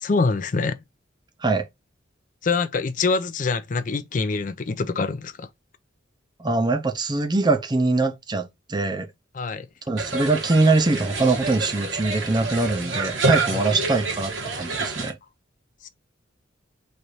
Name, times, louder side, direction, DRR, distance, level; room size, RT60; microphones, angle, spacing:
voice 1, 0.0-0.8 2.4-5.5 9.3-9.7 13.5-13.6 15.8-15.9, left 4 dB, 40° left, 0.4 m, -25 dB
voice 2, 6.4-9.1 9.9-15.2, right 3 dB, 20° right, 0.6 m, -23 dB
sound 1, 10.0-15.1, right 3 dB, 80° right, 1.3 m, -28 dB
3.2 x 2.5 x 4.2 m
head